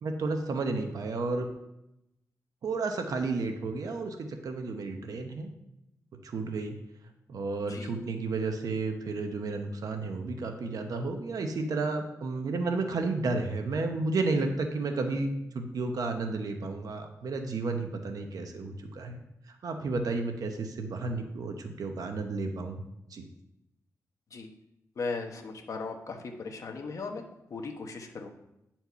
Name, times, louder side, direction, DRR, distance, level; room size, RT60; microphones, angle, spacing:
voice 1, 0.0-1.5 2.6-5.5 6.2-6.7 7.3-19.2 19.5-22.8 23.1-23.2, right 3 dB, 75° right, 5 dB, 1.0 m, -32 dB
voice 2, 25.0-26.2 26.4-27.2 27.5-28.3, left 4 dB, 60° left, 3 dB, 1.1 m, -37 dB
9.5 x 4.5 x 5.6 m, 0.86 s
wide cardioid pair, 145°, 6 cm